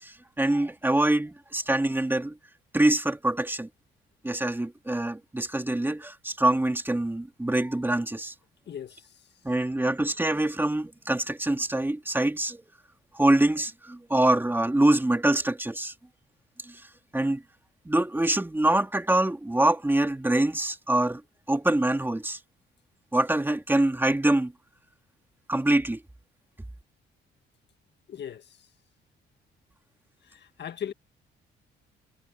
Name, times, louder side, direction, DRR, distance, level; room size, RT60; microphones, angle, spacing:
voice 1, 0.0-2.3 2.7-3.7 4.2-8.3 9.4-12.6 13.2-15.9 16.7-16.8 17.1-17.4 17.9-21.2 21.5-22.4 23.1-24.5 25.5-26.0, right 1 dB, 10° right, 2.5 m, -25 dB
voice 2, 8.7-9.1 28.1-28.5 30.3-30.9, left 9 dB, 60° left, 1.8 m, -38 dB
cardioid pair, 90°, 20 cm